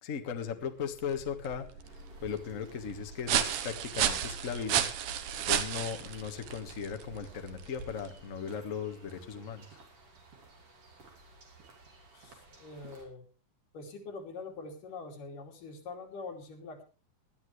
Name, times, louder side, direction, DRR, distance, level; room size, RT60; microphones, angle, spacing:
voice 1, 0.0-1.6 2.2-5.2 5.5-9.7, left 7 dB, 40° left, 6 dB, 1.2 m, -37 dB
sound 1, 0.8-8.3, right 9 dB, 75° right, 2.6 m, -34 dB
sound 2, 1.5-9.7, left 3 dB, 65° left, 7.0 m, -62 dB
sound 3, 1.8-13.1, right 3 dB, 45° right, 3.9 m, -55 dB
voice 2, 12.1-13.3 13.7-16.8, left 3 dB, 85° left, 2 dB, 4.3 m, -44 dB
19.5 x 12.0 x 3.2 m, 0.34 s
omnidirectional pair, 3.7 m